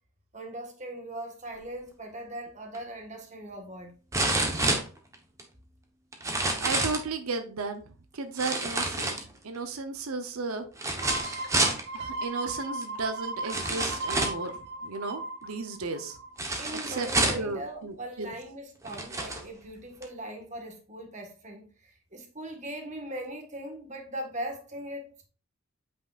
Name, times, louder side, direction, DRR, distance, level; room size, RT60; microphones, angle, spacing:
voice 1, 0.3-4.0 16.6-25.3, right 1 dB, 35° right, 1.5 m, -40 dB
sound 1, 2.7-2.8 4.1-5.4 6.1-7.1 8.4-9.6 10.8-11.8 12.8-12.9 13.5-14.5 16.4-17.5 18.3-18.4 18.8-19.4 20.0-20.1, right 2 dB, 15° right, 1.0 m, -28 dB
voice 2, 6.6-7.8 8.1-9.1 9.4-10.6 11.9-14.5 14.8-16.2 16.9-17.1 17.3-18.3, right 3 dB, 90° right, 0.7 m, -34 dB
sound 2, 11.0-16.5 16.9-17.0, right 2 dB, 50° right, 0.9 m, -37 dB
8.6 x 5.2 x 2.4 m
head